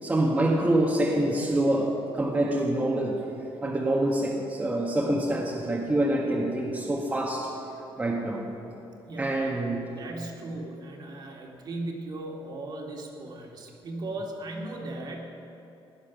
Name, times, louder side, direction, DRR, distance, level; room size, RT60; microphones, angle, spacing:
voice 1, 0.0-3.2 3.6-7.5 8.0-8.5 9.2-9.8, right 1 dB, 15° right, -2 dB, 1.4 m, -26 dB
voice 2, 9.1-9.6 10.0-15.2, right 2 dB, 45° right, -1 dB, 2.1 m, -37 dB
17.0 x 11.0 x 6.1 m, 2.9 s
cardioid pair, 145°, 10 cm